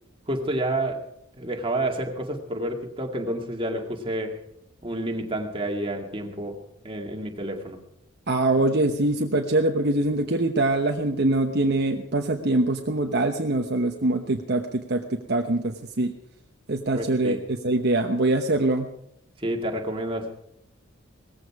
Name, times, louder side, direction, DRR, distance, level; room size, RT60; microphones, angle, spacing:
voice 1, 0.3-1.1 1.4-4.4 4.8-7.8 16.9-17.4 19.4-20.3, right 1 dB, 25° right, 2 dB, 2.2 m, -29 dB
voice 2, 8.3-16.1 16.7-18.9, right 2 dB, 50° right, 4 dB, 1.0 m, -23 dB
18.5 x 15.0 x 4.8 m, 0.74 s
head